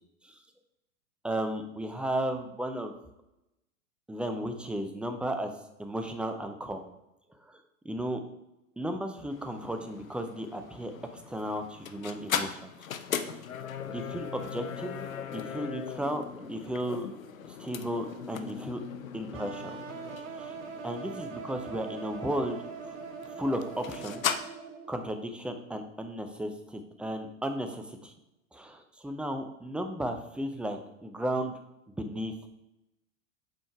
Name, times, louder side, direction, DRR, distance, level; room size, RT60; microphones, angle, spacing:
voice 1, 1.2-2.9 4.1-5.5 5.8-6.8 7.4-7.6 7.8-8.2 8.8-12.7 13.9-17.1 17.4-18.8 19.1-19.8 20.3-20.5 20.8-22.6 22.8-22.9 23.3-24.2 24.9-28.1 28.5-31.6 32.0-32.3, right 1 dB, 5° right, 6 dB, 0.4 m, -34 dB
sound 1, 9.3-24.4, left 8 dB, 80° left, 0.7 m, -39 dB
sound 2, 19.3-25.1, right 6 dB, 70° right, 0.9 m, -42 dB
7.8 x 4.4 x 4.4 m, 0.90 s
figure-of-eight pair, 90°, 40 cm